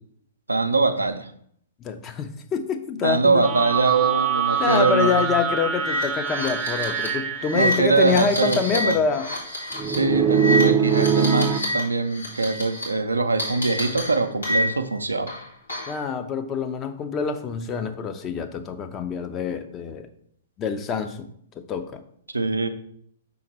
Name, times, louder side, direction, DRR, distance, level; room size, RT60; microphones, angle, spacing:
voice 1, 0.5-1.3 3.0-5.2 7.5-9.0 9.9-15.3 22.3-22.7, right 3 dB, 90° right, 8 dB, 0.5 m, -22 dB
voice 2, 1.8-3.5 4.6-9.3 15.9-20.1 20.6-21.3 21.6-22.0, left 6 dB, 25° left, 7 dB, 0.6 m, -26 dB
sound 1, 3.4-7.7 9.7-11.6, right 7 dB, 20° right, 0.5 m, -23 dB
sound 2, 4.5-4.8 5.1-5.2 5.7-11.8 12.1-12.8 13.4-14.9 15.3-16.0, left 1 dB, 90° left, 2.5 m, -29 dB
5.8 x 3.9 x 4.2 m, 0.67 s
figure-of-eight pair, 115°, 0 cm